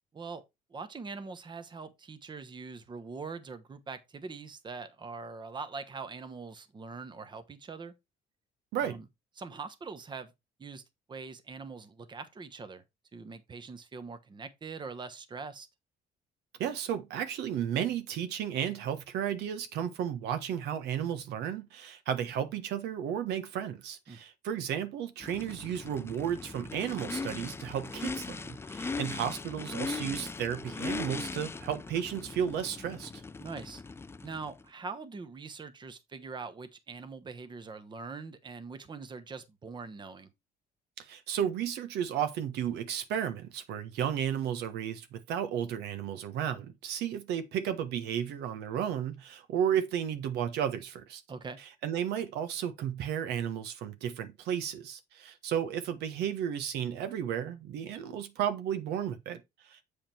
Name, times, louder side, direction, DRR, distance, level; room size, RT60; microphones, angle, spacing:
voice 1, 0.7-7.9 8.8-9.0 9.4-10.3 10.6-10.8 11.1-12.8 13.1-15.7 24.1-24.2 33.4-33.8 34.2-40.3 51.3-51.6, right 4 dB, 25° right, 1.1 m, -43 dB
voice 2, 16.6-33.1 41.0-51.2 51.8-59.9, right 9 dB, 80° right, 1.3 m, -33 dB
Race car auto racing / Idling / Accelerating revving vroom, 25.2-34.6, left 4 dB, 15° left, 0.4 m, -39 dB
7.6 x 5.0 x 4.4 m
cardioid pair, 110°, 17 cm